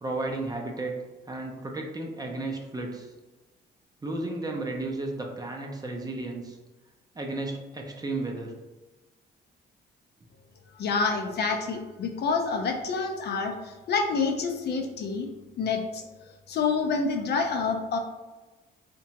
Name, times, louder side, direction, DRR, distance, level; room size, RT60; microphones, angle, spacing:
voice 1, 0.0-1.0 1.3-3.1 4.0-6.6 7.1-8.5, right 2 dB, 20° right, 1 dB, 0.4 m, -33 dB
voice 2, 10.8-15.3 15.6-16.1 16.5-18.0, left 4 dB, 55° left, 4 dB, 0.4 m, -27 dB
2.8 x 2.2 x 2.8 m, 1.2 s
cardioid pair, 90°, 20 cm